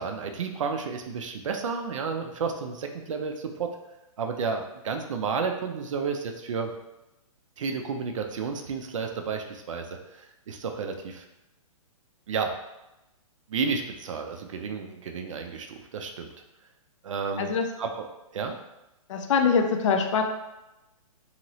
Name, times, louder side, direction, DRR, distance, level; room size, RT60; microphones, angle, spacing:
voice 1, 0.0-3.7 4.2-6.7 7.6-11.2 12.3-12.6 13.5-16.3 17.0-17.5 17.8-18.1 18.3-18.6, right 5 dB, 60° right, 5 dB, 0.4 m, -31 dB
voice 2, 19.1-20.2, left 5 dB, 55° left, 4 dB, 0.4 m, -23 dB
3.0 x 2.8 x 2.7 m, 0.95 s
hypercardioid pair, 170°, 19 cm